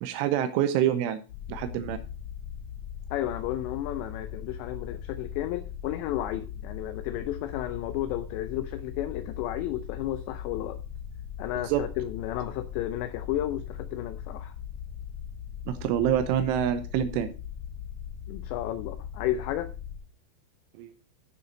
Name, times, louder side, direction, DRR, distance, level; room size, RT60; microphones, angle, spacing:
voice 1, 0.0-1.2 1.5-2.0 11.7-11.8 15.7-17.3 20.8-21.0, right 10 dB, 85° right, 10 dB, 3.2 m, -26 dB
sound 1, 1.3-20.0, left 8 dB, 55° left, 3.0 m, -39 dB
voice 2, 3.1-10.8 11.4-14.5 18.3-19.7, left 13 dB, 80° left, 9 dB, 2.7 m, -33 dB
9.5 x 6.7 x 5.6 m, 0.33 s
omnidirectional pair, 5.6 m